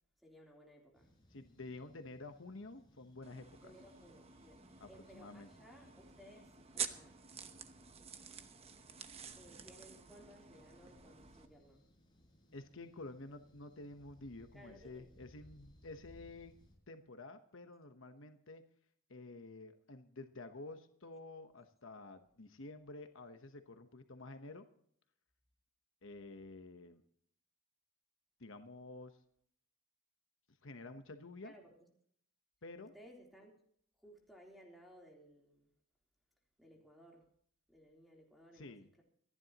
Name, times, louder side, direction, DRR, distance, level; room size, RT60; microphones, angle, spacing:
voice 1, 0.2-1.1 3.6-7.2 9.3-11.9 14.5-15.1 31.4-31.8 32.8-33.5 34.0-35.7 36.6-37.3 37.7-39.0, equal, ahead, -1 dB, 3.5 m, -60 dB
sound 1, 0.9-16.8, left 1 dB, 20° left, 5.2 m, -66 dB
voice 2, 1.3-3.7 4.8-5.5 12.5-16.5 16.9-18.6 19.1-24.6 26.0-27.0 28.4-29.2 30.6-31.5 32.6-32.9 38.6-38.9, left 2 dB, 60° left, 7 dB, 1.1 m, -50 dB
sound 2, 3.2-11.5, right 7 dB, 30° right, 0.9 m, -49 dB
26.5 x 11.0 x 3.0 m, 0.65 s
head